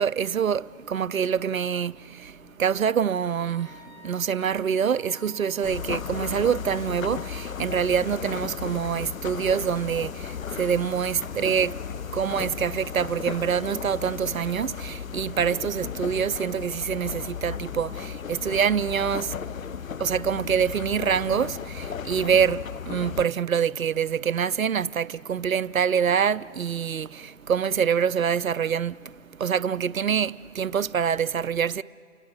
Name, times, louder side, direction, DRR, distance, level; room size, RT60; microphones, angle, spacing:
voice 1, 0.0-11.8 12.1-19.3 20.0-29.1 29.4-31.8, right 7 dB, 85° right, 0.6 m, -25 dB
Wind instrument woodwind instrument, 3.5-7.8, left 7 dB, 5° left, 1.7 m, -51 dB
sound 1, 5.6-23.3, left 7 dB, 80° left, 0.6 m, -35 dB
29.0 x 24.5 x 7.6 m
figure-of-eight pair, 130°, 40 cm